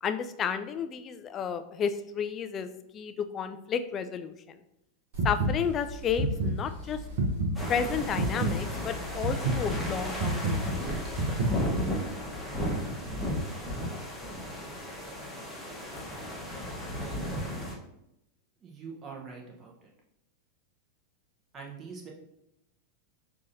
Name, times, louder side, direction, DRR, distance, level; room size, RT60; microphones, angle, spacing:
voice 1, 0.0-4.6 5.2-7.0 7.7-11.0, left 7 dB, 25° left, 10 dB, 0.3 m, -32 dB
sound 1, 5.1-11.9, right 2 dB, 50° right, 1.0 m, -30 dB
sound 2, 7.5-17.7, equal, 5° left, 1.1 m, -34 dB
voice 2, 18.6-19.9 21.5-22.1, right 5 dB, 25° right, -1 dB, 0.9 m, -44 dB
6.2 x 2.7 x 2.6 m, 0.85 s
figure-of-eight pair, 90°, 0 cm